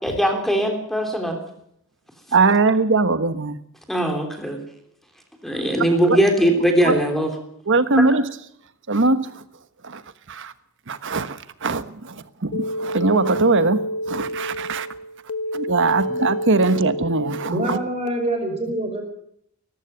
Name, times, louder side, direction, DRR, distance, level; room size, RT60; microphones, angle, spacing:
voice 1, 0.0-1.4 3.9-4.6 5.4-7.3, right 1 dB, ahead, 3.3 m, -20 dB
voice 2, 2.3-3.6 6.1-6.2 6.8-7.0 7.7-8.3 8.9-9.4 9.8-10.0 10.3-10.5 10.9-14.9 15.5-17.8, right 3 dB, 55° right, 1.2 m, -21 dB
sound 1, 12.5-18.1, equal, 75° left, 1.3 m, -29 dB
voice 3, 17.5-19.0, right 1 dB, 30° right, 5.3 m, -25 dB
19.0 x 14.5 x 9.3 m
head